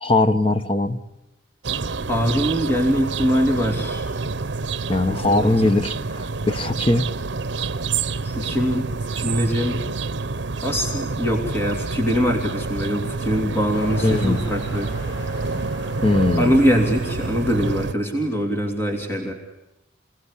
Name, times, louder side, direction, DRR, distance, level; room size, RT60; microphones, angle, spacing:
voice 1, 0.0-1.0 4.9-7.1 14.0-14.4 16.0-16.6, left 2 dB, 30° left, 9 dB, 1.2 m, -20 dB
sound 1, 1.6-17.9, right 4 dB, 70° right, 0.9 m, -28 dB
voice 2, 2.1-4.0 5.1-5.7 8.2-8.9 9.1-9.8 10.6-14.9 16.4-19.3, equal, 10° left, 3 dB, 2.9 m, -23 dB
sound 2, 13.7-17.8, equal, 70° left, 5.9 m, -38 dB
28.5 x 18.5 x 10.0 m, 0.93 s
head